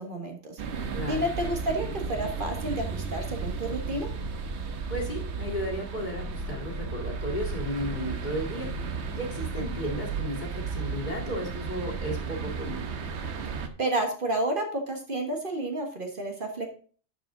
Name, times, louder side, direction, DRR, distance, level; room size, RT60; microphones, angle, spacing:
voice 1, 0.0-4.1 13.5-16.7, right 1 dB, 50° right, 3 dB, 1.6 m, -31 dB
sound 1, 0.6-13.7, right 4 dB, 75° right, 1.2 m, -34 dB
voice 2, 0.9-1.3 4.9-12.9, equal, 40° left, -1 dB, 2.4 m, -34 dB
11.5 x 4.9 x 3.8 m, 0.41 s
omnidirectional pair, 1.2 m